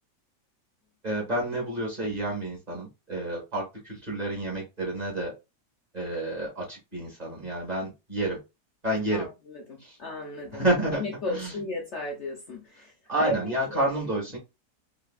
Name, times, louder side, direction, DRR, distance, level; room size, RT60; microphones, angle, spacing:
voice 1, 1.0-5.3 5.9-8.4 8.8-9.3 9.8-10.0 10.5-11.6 13.1-14.4, right 1 dB, 25° right, 1.7 m, -29 dB
voice 2, 9.7-10.6 11.0-12.9 13.2-13.3, left 2 dB, 60° left, 0.8 m, -34 dB
3.8 x 3.2 x 2.4 m
omnidirectional pair, 1.8 m